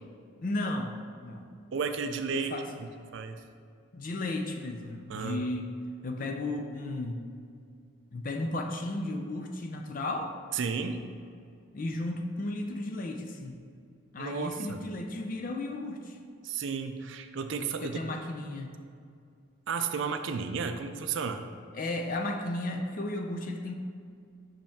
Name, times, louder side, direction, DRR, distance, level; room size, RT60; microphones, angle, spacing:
voice 1, 0.4-0.9 1.2-1.4 2.3-2.7 3.9-5.7 6.0-7.3 8.1-10.3 11.7-13.5 14.1-16.2 17.8-18.8 21.7-23.7, left 2 dB, 40° left, 4 dB, 0.4 m, -34 dB
voice 2, 1.7-2.5 2.8-3.4 5.1-5.5 10.5-11.0 14.2-14.9 16.4-18.1 19.7-21.4, right 5 dB, 60° right, 7 dB, 0.4 m, -33 dB
5.6 x 5.2 x 3.5 m, 2.3 s
head